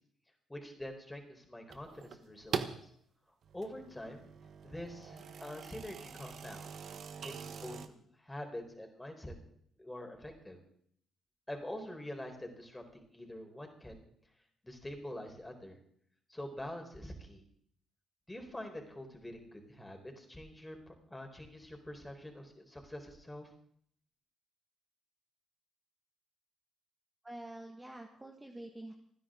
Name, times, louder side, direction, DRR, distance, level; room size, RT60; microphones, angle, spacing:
voice 1, 0.5-2.9 3.5-4.3 4.6-6.8 7.2-9.3 9.8-10.6 11.5-14.1 14.6-15.8 16.3-17.4 18.3-23.5, left 1 dB, 10° left, 3 dB, 4.3 m, -45 dB
sound 1, 1.7-2.8 3.4-7.9, right 7 dB, 65° right, 1.2 m, -43 dB
voice 2, 27.2-28.9, right 1 dB, 15° right, 2 dB, 1.7 m, -47 dB
30.0 x 10.5 x 3.8 m, 0.66 s
cardioid pair, 90°, 0 cm